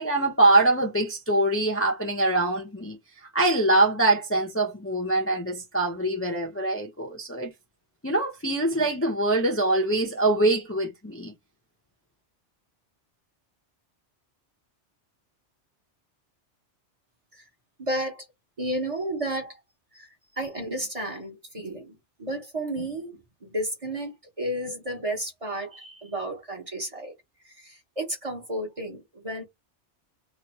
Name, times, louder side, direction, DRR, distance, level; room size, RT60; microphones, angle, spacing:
voice 1, 0.0-3.0 3.3-7.5 8.0-11.3, right 2 dB, 15° left, 0.7 m, -23 dB
voice 2, 17.8-18.3 18.6-19.6 19.9-27.1 27.4-29.4, right 1 dB, 30° right, 1.0 m, -32 dB
3.1 x 2.5 x 4.2 m
omnidirectional pair, 1.2 m